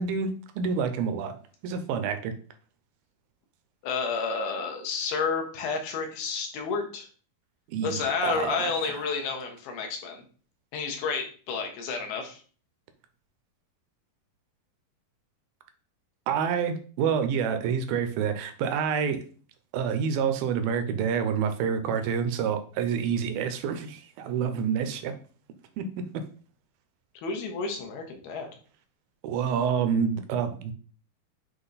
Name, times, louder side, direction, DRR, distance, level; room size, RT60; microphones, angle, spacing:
voice 1, 0.0-1.4 1.6-2.3 7.7-8.7 16.3-19.2 19.7-25.1 25.8-26.1 29.2-30.7, right 7 dB, 80° right, 8 dB, 2.3 m, -28 dB
voice 2, 3.8-7.1 7.8-10.2 10.7-12.4 27.2-28.5, left 5 dB, 80° left, 3 dB, 3.0 m, -30 dB
7.9 x 3.0 x 4.0 m, 0.40 s
omnidirectional pair, 4.4 m